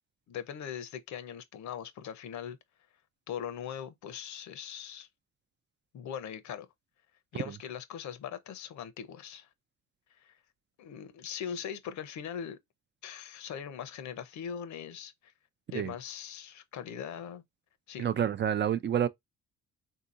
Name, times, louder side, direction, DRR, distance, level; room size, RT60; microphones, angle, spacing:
voice 1, 0.3-2.6 3.3-5.1 5.9-6.7 7.3-9.5 10.2-10.4 10.8-12.6 13.0-15.3 15.7-17.4 17.9-18.1, left 8 dB, 70° left, 0.7 m, -40 dB
voice 2, 18.0-19.1, right 9 dB, 40° right, 0.4 m, -28 dB
3.6 x 2.8 x 2.4 m
cardioid pair, 90°, 30 cm